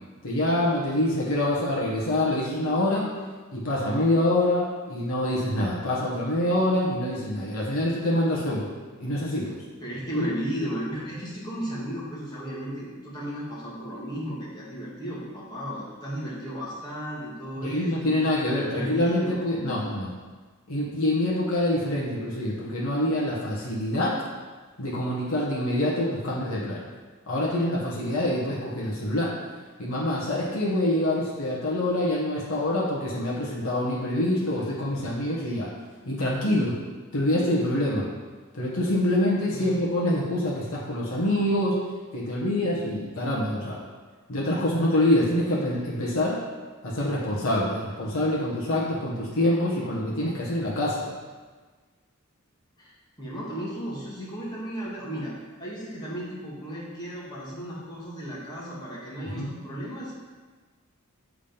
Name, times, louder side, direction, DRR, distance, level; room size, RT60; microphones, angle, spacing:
voice 1, 0.2-3.1 3.5-8.7 9.0-9.6 10.1-10.3 17.6-20.1 20.7-24.1 24.8-26.8 27.3-29.3 29.8-35.7 36.1-36.8 37.1-38.1 38.5-41.8 42.1-43.8 44.3-46.4 46.8-51.1 59.3-59.5, left 1 dB, 75° left, -5 dB, 1.3 m, -25 dB
voice 2, 9.8-18.3 18.7-19.9 39.4-39.7 52.8-55.3 55.6-60.1, equal, 20° left, -7 dB, 1.9 m, -35 dB
7.1 x 3.8 x 5.2 m, 1.4 s
head